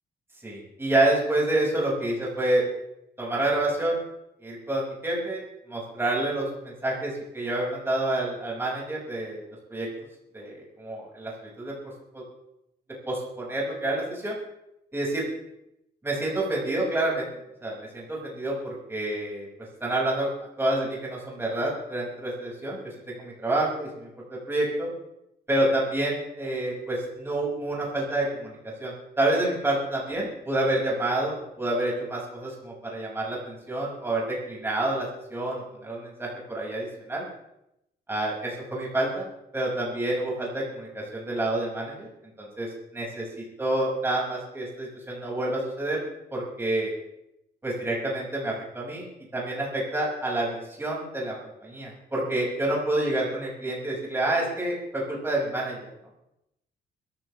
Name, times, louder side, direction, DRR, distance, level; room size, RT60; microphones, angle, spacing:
voice 1, 0.4-2.6 3.2-4.0 4.4-5.4 5.7-9.4 9.7-9.9 10.3-11.3 11.6-11.7 12.1-12.2 13.1-14.3 14.9-15.2 16.0-17.3 17.6-19.5 19.8-20.3 20.6-24.9 25.5-37.2 38.1-39.3 39.5-42.1 42.4-42.7 42.9-46.0 46.3-46.9 47.6-49.0 49.3-51.3 51.6-55.9, right 1 dB, 15° right, -4 dB, 6.2 m, -28 dB
22.5 x 14.5 x 3.4 m, 0.83 s
cardioid pair, 140°, 16 cm